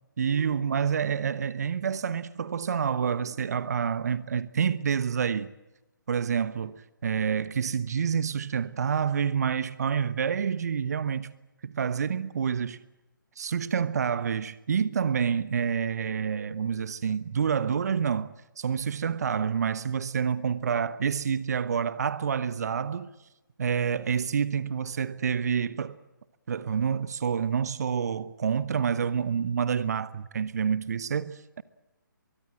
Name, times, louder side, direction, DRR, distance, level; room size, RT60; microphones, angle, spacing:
voice 1, 0.2-5.5 6.1-11.3 11.6-12.8 13.4-23.1 23.6-26.0 26.5-31.6, right 7 dB, 50° right, 1.1 m, -28 dB
24.0 x 23.5 x 7.7 m
figure-of-eight pair, 140°, 11 cm